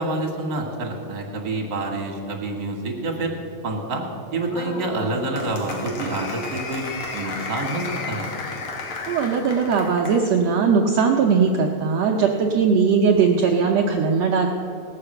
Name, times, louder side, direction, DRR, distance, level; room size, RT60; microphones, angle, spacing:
voice 1, 0.0-3.3 3.6-4.0 4.3-6.8 7.1-8.3, right 2 dB, 45° right, 0 dB, 1.7 m, -27 dB
Applause, 4.5-10.3, left 3 dB, 55° left, 1.5 m, -33 dB
voice 2, 9.1-14.5, right 5 dB, 75° right, 1 dB, 1.5 m, -19 dB
19.0 x 6.8 x 7.8 m, 2.7 s
omnidirectional pair, 3.9 m